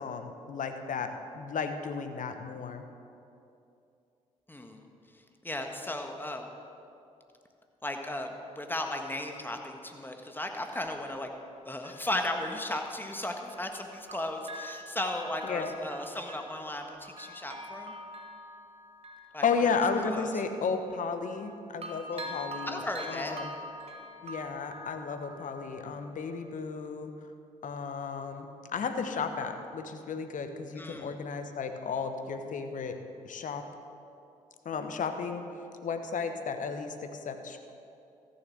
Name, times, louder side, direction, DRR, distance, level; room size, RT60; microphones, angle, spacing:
voice 1, 0.0-2.8 15.4-15.7 19.4-22.8 23.1-23.5 24.2-27.1 27.6-33.0 33.2-33.6 34.6-35.4 35.8-37.6, left 5 dB, 50° left, 7 dB, 1.1 m, -33 dB
voice 2, 4.5-4.9 5.1-6.5 7.8-11.3 11.6-17.9 19.3-19.8 20.1-20.3 22.1-22.3 22.7-23.4 30.8-31.1, left 1 dB, 10° left, 3 dB, 1.6 m, -36 dB
Bell, 10.9-11.0 11.8-13.8 14.1-21.5 21.8-26.4 26.9-27.0, equal, 40° right, 1.5 m, -45 dB
14.0 x 6.9 x 6.3 m, 2.6 s
hypercardioid pair, 45°, 16 cm